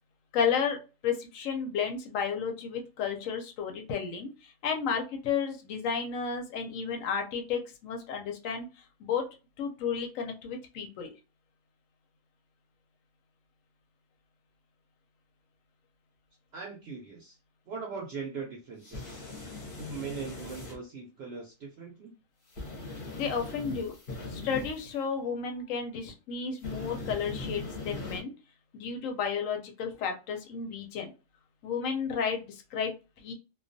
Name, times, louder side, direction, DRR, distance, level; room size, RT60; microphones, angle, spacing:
voice 1, 0.3-8.7 9.0-9.3 9.6-11.1 23.1-23.9 24.3-28.3 28.7-31.1 31.6-33.3, left 6 dB, 80° left, 3 dB, 1.0 m, -32 dB
voice 2, 16.5-17.4 17.7-19.2 19.7-22.1, right 5 dB, 65° right, -1 dB, 0.7 m, -40 dB
Flamethrower Weapon Short Medium Bursts, 18.8-20.8 22.5-24.9 26.6-28.2, left 2 dB, 50° left, 0.8 m, -40 dB
2.3 x 2.2 x 2.5 m, 0.31 s
omnidirectional pair, 1.4 m